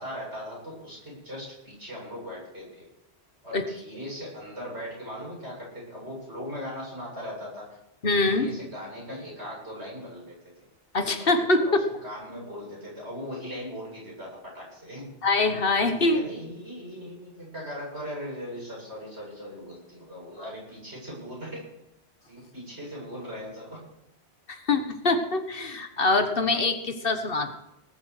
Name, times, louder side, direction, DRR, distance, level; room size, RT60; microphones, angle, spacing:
voice 1, 0.0-2.9 3.4-7.7 8.3-10.4 11.2-11.3 11.6-11.8 12.0-15.1 15.9-21.7 22.3-23.8, equal, 85° right, -4 dB, 8.2 m, -39 dB
voice 2, 8.0-8.5 10.9-11.7 15.2-16.2 24.5-27.5, left 3 dB, 60° left, 7 dB, 1.5 m, -24 dB
19.5 x 7.9 x 6.5 m, 0.85 s
omnidirectional pair, 1.1 m